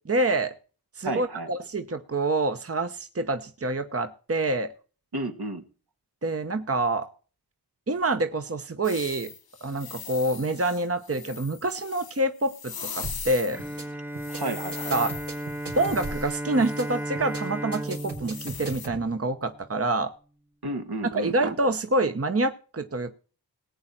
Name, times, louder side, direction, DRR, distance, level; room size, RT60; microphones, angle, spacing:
voice 1, 0.1-0.6 1.0-4.7 6.2-7.1 7.9-9.3 9.6-13.6 14.9-15.1 15.8-20.1 21.1-23.2, right 2 dB, 35° right, 9 dB, 1.1 m, -27 dB
voice 2, 1.0-1.5 5.1-5.6 14.3-15.0 20.6-21.3, right 2 dB, 65° right, 7 dB, 1.9 m, -32 dB
sound 1, 8.8-13.8 14.2-17.0 17.8-18.9, left 6 dB, 60° left, 1.0 m, -41 dB
sound 2, 13.0-13.3 13.6-13.8 14.1-14.4 14.7-16.3 16.6-16.8 17.1-17.4 17.7-19.0, right 3 dB, 90° right, 4.0 m, -37 dB
Bowed string instrument, 13.5-19.7, right 1 dB, 5° right, 0.8 m, -35 dB
19.0 x 8.8 x 4.4 m, 0.38 s
wide cardioid pair, 65°, 40 cm